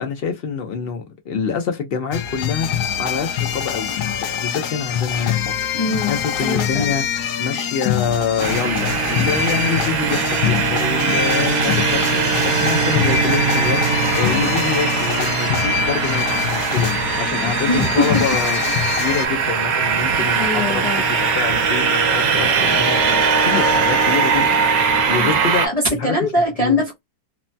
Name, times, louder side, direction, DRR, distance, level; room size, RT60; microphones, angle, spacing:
voice 1, 0.0-18.6 18.9-23.0 23.4-26.1 26.6-26.7, left 6 dB, 90° left, 0.5 m, -26 dB
sound 1, 2.1-19.3, left 9 dB, 75° left, 1.1 m, -24 dB
voice 2, 5.7-6.9 17.7-18.2 19.0-19.1 20.4-21.0 25.2-25.3 25.6-27.0, left 2 dB, 40° left, 0.5 m, -22 dB
sound 2, 8.4-25.7, right 5 dB, 65° right, 1.0 m, -20 dB
3.2 x 2.1 x 2.6 m
omnidirectional pair, 1.8 m